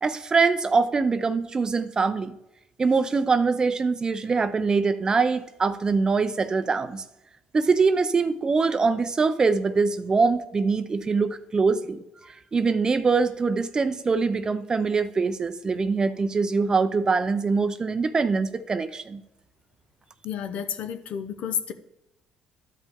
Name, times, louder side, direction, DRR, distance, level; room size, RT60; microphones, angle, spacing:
voice 1, 0.0-2.4 2.8-7.0 7.5-19.2, right 4 dB, 30° right, 12 dB, 0.5 m, -23 dB
voice 2, 20.2-21.7, left 8 dB, 65° left, 10 dB, 0.8 m, -31 dB
12.5 x 5.3 x 3.6 m, 0.88 s
supercardioid pair, 80°, 2 cm